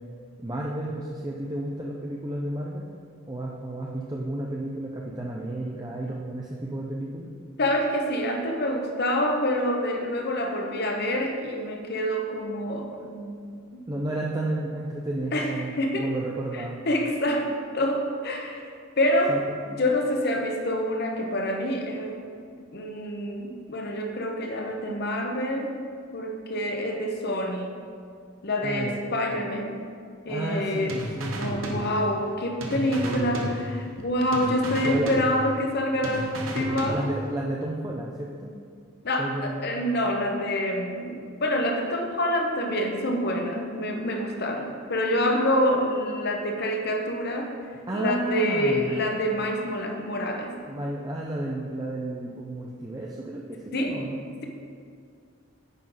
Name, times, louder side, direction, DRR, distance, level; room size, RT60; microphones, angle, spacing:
voice 1, 0.4-2.8 3.3-7.3 13.9-16.8 19.3-19.7 28.6-29.0 30.3-31.4 32.7-33.5 34.8-35.1 36.6-38.5 39.2-39.6 47.9-49.1 50.7-54.2, right 1 dB, 20° right, -3 dB, 0.5 m, -32 dB
voice 2, 7.6-13.6 15.3-16.1 16.9-17.5 17.7-18.7 19.0-19.4 19.7-22.2 22.7-25.7 26.1-27.8 28.4-29.8 30.2-31.0 31.3-37.1 39.0-47.5 47.9-50.6 53.7-53.9, left 1 dB, 50° left, 2 dB, 0.9 m, -27 dB
sound 1, 30.9-32.3 32.6-34.0 34.3-35.7 36.0-37.4, right 1 dB, 75° right, 1.0 m, -33 dB
9.3 x 5.6 x 3.9 m, 2.2 s
head